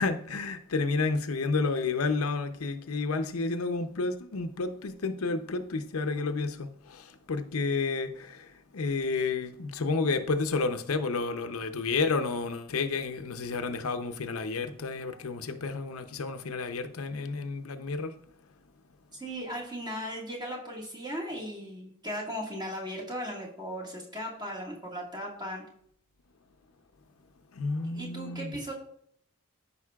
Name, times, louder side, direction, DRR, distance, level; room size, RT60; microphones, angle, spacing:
voice 1, 0.0-18.1 27.5-28.6, left 4 dB, 90° left, 0.7 m, -31 dB
voice 2, 19.1-25.6 27.8-28.7, equal, 20° right, 1.7 m, -37 dB
14.0 x 5.3 x 2.4 m
head